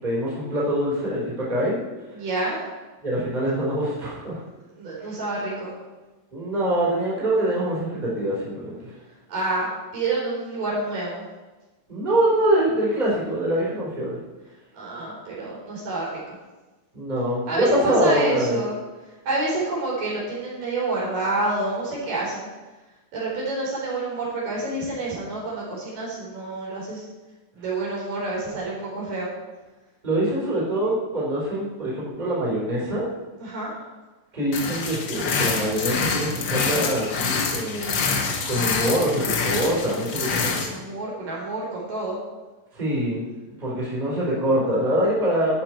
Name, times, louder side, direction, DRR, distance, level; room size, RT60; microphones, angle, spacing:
voice 1, 0.0-1.8 3.0-4.4 5.0-5.1 6.3-8.9 11.9-14.2 16.9-18.6 30.0-33.1 34.3-38.0 38.5-40.8 42.7-43.2 43.6-45.6, right 1 dB, 10° right, -7 dB, 4.0 m, -24 dB
voice 2, 2.1-2.6 4.8-5.7 9.3-11.3 14.7-16.2 17.5-18.8 19.3-22.5 23.1-27.0 27.5-29.3 33.4-33.7 40.6-42.2, right 2 dB, 75° right, -6 dB, 5.7 m, -28 dB
sound 1, 34.5-40.7, left 5 dB, 75° left, 1.0 m, -26 dB
12.0 x 9.1 x 4.6 m, 1.2 s
omnidirectional pair, 3.9 m